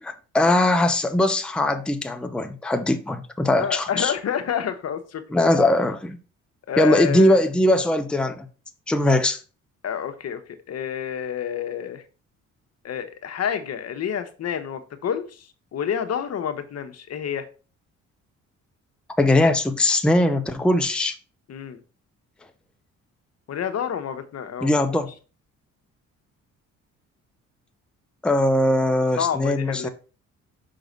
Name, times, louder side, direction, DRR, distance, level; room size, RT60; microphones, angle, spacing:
voice 1, 0.0-4.1 5.3-6.2 6.8-8.5 8.9-9.4 19.2-21.1 24.6-25.1 28.2-29.9, left 1 dB, 5° left, 0.7 m, -20 dB
voice 2, 3.6-5.2 6.7-7.5 9.8-10.4 10.7-12.0 12.8-17.5 21.5-21.8 23.5-25.0 29.2-29.9, left 8 dB, 55° left, 1.0 m, -28 dB
6.0 x 3.9 x 5.2 m
cardioid pair, 90°, 30 cm